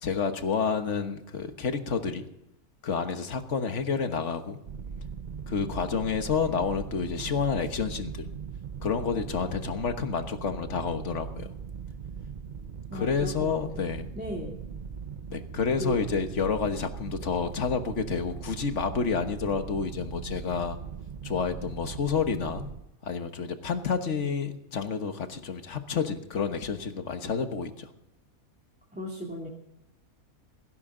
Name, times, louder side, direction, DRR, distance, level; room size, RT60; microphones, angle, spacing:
voice 1, 0.0-2.3 2.8-4.6 5.5-8.3 8.8-11.5 12.9-14.1 15.3-20.8 21.2-22.7 23.0-27.9, left 5 dB, 55° left, 8 dB, 1.6 m, -29 dB
sound 1, 4.6-22.8, right 6 dB, 45° right, 0.6 m, -40 dB
voice 2, 12.9-13.8 14.1-14.5 15.8-16.0 28.9-29.5, equal, 5° right, -3 dB, 2.6 m, -36 dB
16.5 x 16.5 x 3.8 m, 0.85 s
omnidirectional pair, 1.5 m